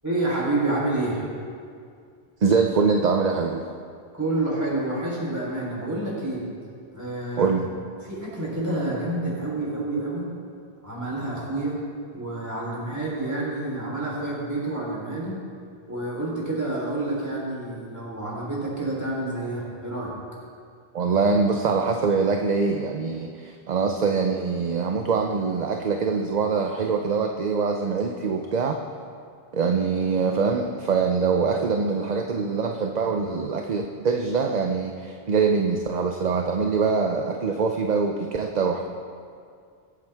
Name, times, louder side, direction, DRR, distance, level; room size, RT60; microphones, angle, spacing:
voice 1, 0.0-1.2 4.2-6.4 6.9-7.5 8.0-10.2 10.8-11.8 12.1-15.3 15.9-20.1, right 2 dB, 15° right, -6 dB, 4.0 m, -28 dB
voice 2, 2.4-3.6 7.4-7.7 20.9-28.8 29.5-38.8, right 5 dB, 45° right, 3 dB, 0.7 m, -24 dB
22.5 x 8.4 x 3.5 m, 2.3 s
omnidirectional pair, 1.1 m